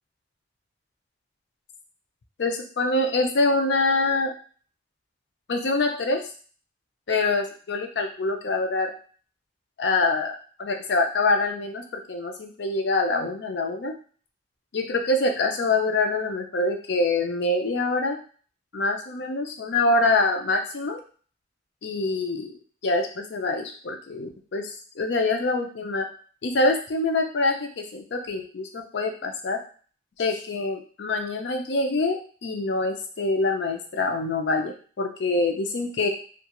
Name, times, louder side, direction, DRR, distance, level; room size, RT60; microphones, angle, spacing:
voice 1, 2.4-4.3 5.5-6.2 7.1-8.9 9.8-13.9 14.7-18.2 18.7-21.0 21.8-22.6 22.8-26.1 26.4-29.6 30.2-36.1, left 2 dB, 75° left, 3 dB, 0.5 m, -25 dB
2.3 x 2.3 x 2.9 m, 0.42 s
head